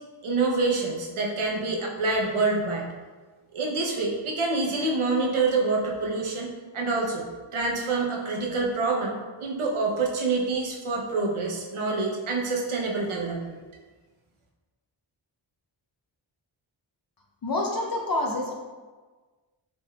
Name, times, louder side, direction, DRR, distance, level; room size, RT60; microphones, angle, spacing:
voice 1, 0.2-2.9 3.5-7.3 7.5-13.4, right 3 dB, 85° right, -1 dB, 0.8 m, -26 dB
voice 2, 17.4-18.6, left 2 dB, 45° left, 0 dB, 0.5 m, -27 dB
3.9 x 3.6 x 2.2 m, 1.4 s
cardioid pair, 55°, 48 cm